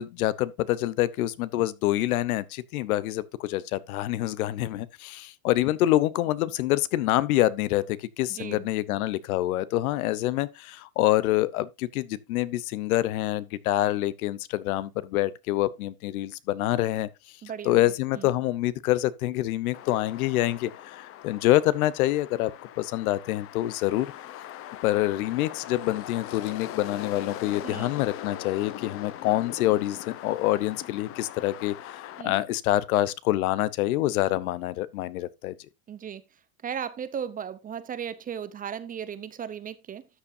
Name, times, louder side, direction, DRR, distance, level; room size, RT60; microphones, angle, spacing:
voice 1, 0.0-17.1 17.6-22.5 22.8-24.1 24.8-35.5, left 15 dB, 75° left, 0.9 m, -26 dB
voice 2, 8.3-8.7 17.4-18.3 27.6-27.9 32.2-32.4 35.9-36.2 36.6-40.1, right 8 dB, 20° right, 0.6 m, -36 dB
sound 1, 19.7-32.2, left 12 dB, 30° left, 0.7 m, -41 dB
13.0 x 7.1 x 2.6 m
supercardioid pair, 130°, 43 cm